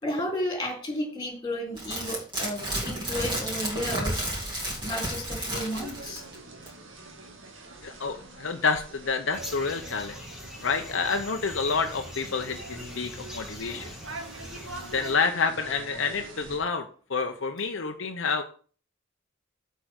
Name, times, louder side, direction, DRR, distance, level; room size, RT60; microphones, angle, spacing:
voice 1, 0.0-4.5 4.8-6.2, left 1 dB, 20° left, 1 dB, 3.7 m, -33 dB
sound 1, 1.8-6.3 6.7-6.8, right 1 dB, 25° right, 3.2 m, -32 dB
sound 2, 5.7-16.6, right 2 dB, 70° right, 1.8 m, -44 dB
voice 2, 7.8-10.2 10.6-13.9 14.7-18.4, left 5 dB, 65° left, 5 dB, 0.8 m, -29 dB
sound 3, 9.3-15.1, left 1 dB, 5° right, 2.1 m, -43 dB
8.0 x 4.7 x 6.4 m, 0.41 s
head